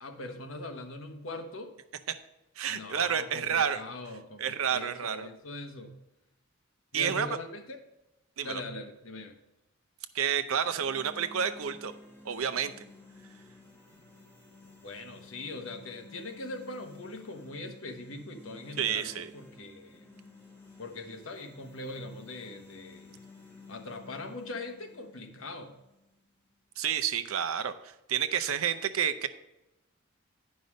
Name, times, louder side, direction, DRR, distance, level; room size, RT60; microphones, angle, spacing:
voice 1, 0.0-1.7 2.7-5.9 6.9-7.8 8.4-9.4 14.8-20.1 20.8-23.2 23.7-25.7, left 2 dB, 70° left, 5 dB, 1.1 m, -41 dB
voice 2, 2.6-3.8 4.4-5.3 6.9-7.4 8.4-8.6 10.1-11.9 12.2-12.7 18.8-19.3 26.8-27.7 28.1-29.3, right 8 dB, 80° right, 10 dB, 0.6 m, -29 dB
sound 1, 10.5-26.6, left 2 dB, 10° left, 1.4 m, -53 dB
9.7 x 5.4 x 5.2 m, 0.94 s
head